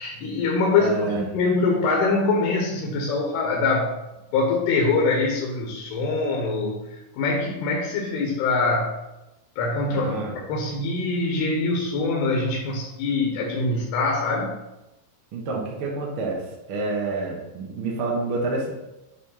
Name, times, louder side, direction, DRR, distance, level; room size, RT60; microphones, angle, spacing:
voice 1, 0.0-3.9 4.3-6.8 7.1-9.0 9.6-14.5, left 3 dB, 80° left, -2 dB, 3.2 m, -24 dB
voice 2, 0.8-1.2 9.9-10.3 15.3-18.7, right 3 dB, 60° right, -3 dB, 1.3 m, -28 dB
9.6 x 3.4 x 5.6 m, 0.96 s
omnidirectional pair, 4.6 m